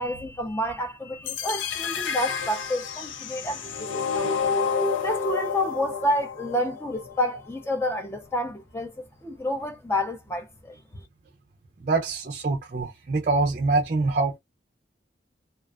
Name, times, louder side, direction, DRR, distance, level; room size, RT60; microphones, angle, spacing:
voice 1, 0.0-4.3 5.0-8.9 9.2-11.0, left 1 dB, 15° left, 0.5 m, -29 dB
sound 1, 1.3-7.3, left 5 dB, 85° left, 0.5 m, -29 dB
voice 2, 11.8-14.4, right 3 dB, 45° right, 0.4 m, -25 dB
2.4 x 2.3 x 2.2 m
head